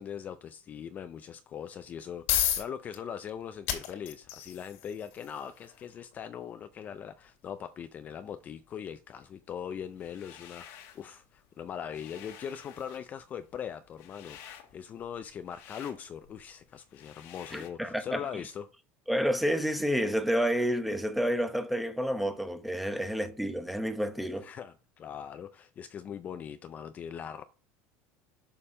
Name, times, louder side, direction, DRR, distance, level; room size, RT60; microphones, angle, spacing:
voice 1, 0.0-18.7 24.4-27.4, left 8 dB, 30° left, 0.4 m, -41 dB
sound 1, 1.9-16.7, left 11 dB, 75° left, 2.3 m, -39 dB
sound 2, 9.9-11.1 11.5-17.7, left 9 dB, 60° left, 1.6 m, -51 dB
voice 2, 17.5-18.2 19.1-24.5, equal, ahead, 0.9 m, -29 dB
6.7 x 5.5 x 5.3 m
supercardioid pair, 145°, 6 cm